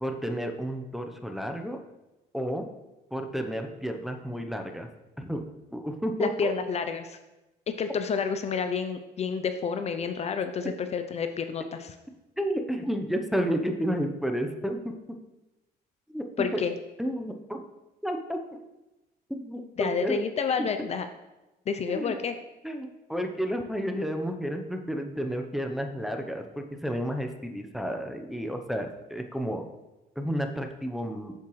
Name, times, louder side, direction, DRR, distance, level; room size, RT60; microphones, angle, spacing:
voice 1, 0.0-1.8 2.3-2.6 3.1-4.9 5.2-5.4 5.7-6.5 12.4-14.9 16.1-16.6 17.0-17.6 18.0-18.4 19.3-20.2 20.6-20.9 21.9-22.1 22.6-29.6 30.2-31.3, equal, ahead, 4 dB, 0.7 m, -31 dB
voice 2, 6.2-7.2 7.8-11.9 16.4-16.7 19.8-21.1 21.7-22.3, left 6 dB, 40° left, 8 dB, 0.5 m, -29 dB
7.3 x 7.1 x 3.1 m, 1.0 s
cardioid pair, 110°, 17 cm